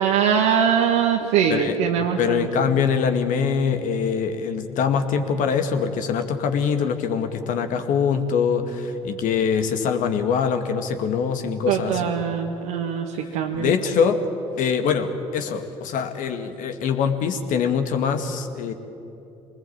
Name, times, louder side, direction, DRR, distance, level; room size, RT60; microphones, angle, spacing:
voice 1, 0.0-2.5 11.7-13.7, right 8 dB, 75° right, -1 dB, 1.7 m, -22 dB
voice 2, 2.2-12.1 13.6-14.2 14.6-18.7, left 6 dB, 60° left, 7 dB, 2.2 m, -23 dB
25.0 x 20.0 x 8.9 m, 2.9 s
hypercardioid pair, 60°, 15 cm